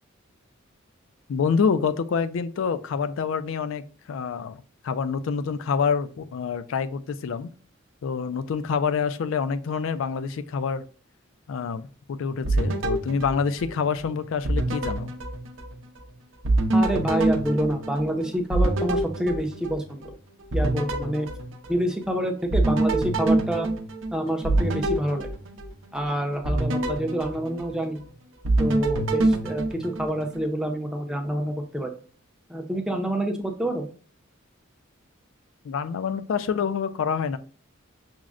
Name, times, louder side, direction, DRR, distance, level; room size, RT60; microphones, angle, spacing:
voice 1, 1.3-7.5 8.0-10.8 11.5-15.1 35.6-37.4, left 6 dB, 70° left, 12 dB, 0.3 m, -27 dB
sound 1, 12.4-14.1 14.4-16.1 16.4-20.1 20.5-22.1 22.5-26.0 26.4-28.1 28.4-30.4, right 2 dB, 65° right, 0.6 m, -26 dB
voice 2, 16.7-20.0 20.5-21.3 21.7-23.7 24.1-25.3 25.9-28.0 28.6-31.9 32.5-33.9, right 1 dB, 5° right, 2 dB, 0.5 m, -27 dB
6.1 x 2.1 x 2.4 m, 0.41 s
head